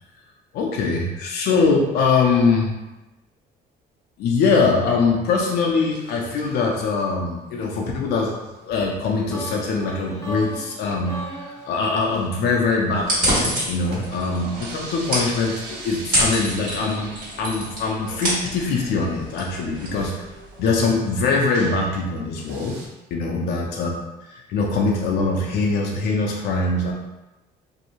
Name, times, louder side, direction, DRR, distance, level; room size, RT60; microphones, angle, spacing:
voice 1, 0.5-2.7 4.2-8.4 8.6-20.2 20.6-22.8 23.1-26.9, left 4 dB, 70° left, 0 dB, 0.5 m, -22 dB
sound 1, 5.9-7.0 8.3-8.6 8.8-8.9 9.1-9.2 9.5-9.6 10.2-10.8 11.3-13.2 13.7-22.0 22.3-22.9, right 2 dB, 80° right, 0.6 m, -42 dB
sound 2, 9.3-13.2, right 1 dB, 15° left, 0.6 m, -37 dB
sound 3, 13.0-20.7, equal, 60° right, 1.3 m, -27 dB
2.6 x 2.0 x 2.9 m, 1.1 s
cardioid pair, 110°, 17 cm